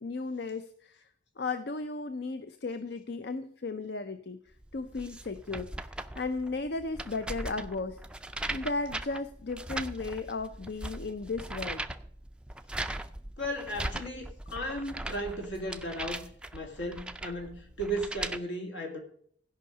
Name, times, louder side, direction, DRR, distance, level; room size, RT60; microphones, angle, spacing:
voice 1, 0.0-1.1 1.4-4.4 4.7-5.7 6.2-8.0 8.5-11.8, left 3 dB, 55° left, 0.5 m, -35 dB
sound 1, 4.6-18.4, right 1 dB, 5° right, 0.4 m, -39 dB
voice 2, 13.4-19.0, right 1 dB, 75° left, 2.5 m, -36 dB
15.5 x 5.6 x 6.7 m
head